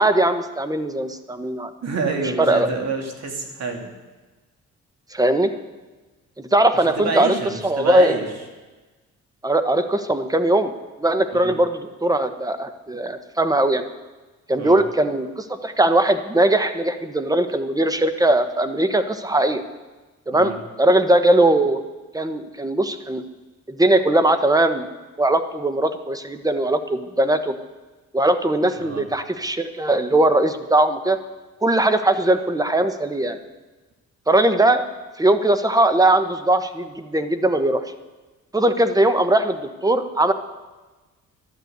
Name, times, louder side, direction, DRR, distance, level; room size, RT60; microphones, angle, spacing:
voice 1, 0.0-1.7 2.4-2.7 5.1-5.5 6.4-7.3 7.6-8.1 9.4-10.7 11.0-13.8 14.5-19.6 20.3-20.5 20.8-21.8 22.1-23.2 23.7-24.8 25.2-27.5 28.1-31.2 31.6-33.4 34.3-34.8 35.2-37.8 38.5-40.3, right 1 dB, 10° right, 10 dB, 1.2 m, -19 dB
voice 2, 1.8-3.9 7.0-8.3 11.3-11.5 14.6-14.8 20.3-20.6 28.8-29.0, right 3 dB, 60° right, 3 dB, 2.9 m, -27 dB
12.5 x 11.0 x 8.1 m, 1.2 s
cardioid pair, 90°, 30 cm